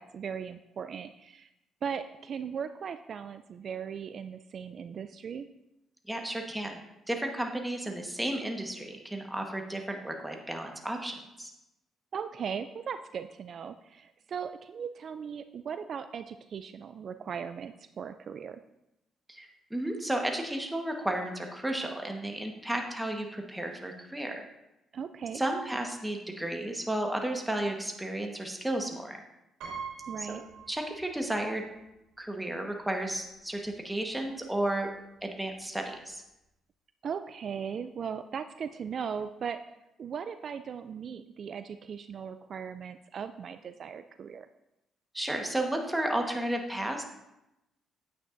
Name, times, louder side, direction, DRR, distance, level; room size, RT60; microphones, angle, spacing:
voice 1, 0.0-1.5 1.8-5.5 12.1-18.6 24.9-25.4 30.1-30.4 37.0-39.6 40.0-44.5, right 7 dB, 55° right, 10 dB, 0.3 m, -38 dB
voice 2, 6.1-6.8 7.1-11.5 19.3-24.4 25.3-29.2 30.2-30.4 30.7-31.6 32.2-34.9 35.2-36.2 45.1-47.0, right 1 dB, 5° right, 2 dB, 1.3 m, -33 dB
Piano, 29.6-31.4 31.7-31.8 33.0-33.1 33.4-33.6, right 6 dB, 85° right, 2.7 m, -43 dB
9.3 x 8.5 x 2.6 m, 0.91 s
cardioid pair, 90°, 0 cm